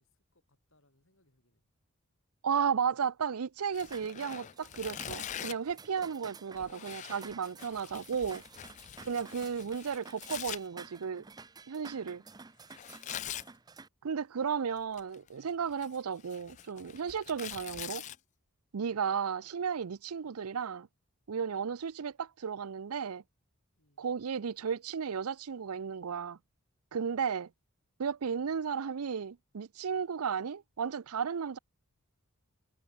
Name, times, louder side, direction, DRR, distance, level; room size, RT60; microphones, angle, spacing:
voice 1, 0.0-1.6 13.1-13.6 20.2-20.4 21.6-21.8 23.8-24.1 28.3-28.7, left 1 dB, 65° left, 6.7 m, -72 dB
voice 2, 2.4-8.4 9.1-11.2 11.7-12.2 14.0-18.0 18.7-20.9 21.3-23.2 24.0-26.4 26.9-27.5 28.0-31.6, right 6 dB, 90° right, 0.5 m, -34 dB
Tearing, 3.7-5.7 6.6-10.6 12.7-13.5 14.8-15.3 15.7-18.2, left 11 dB, 35° left, 0.3 m, -44 dB
sound 1, 3.9-13.9, right 4 dB, 20° right, 0.5 m, -52 dB
head